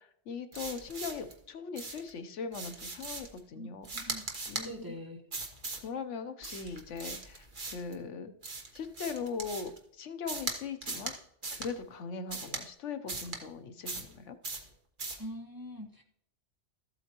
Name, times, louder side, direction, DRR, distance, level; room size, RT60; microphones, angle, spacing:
voice 1, 0.0-4.1 4.5-4.7 5.8-8.3 8.7-11.1 11.5-14.4, left 5 dB, 80° left, 9 dB, 1.1 m, -40 dB
sound 1, 0.5-1.3 1.8-2.1 2.5-3.4 3.8-4.7 5.3-5.9 6.4-7.9 8.4-9.8 10.3-10.6 10.8-11.2 11.4-11.7 12.3-12.6 13.1-13.4 13.9-14.1 14.4-14.7 15.0-15.2, right 3 dB, 45° right, 1.4 m, -39 dB
voice 2, 4.6-5.2 15.2-16.0, equal, 20° right, 1 dB, 1.1 m, -43 dB
13.5 x 8.1 x 2.9 m, 0.70 s
omnidirectional pair, 1.2 m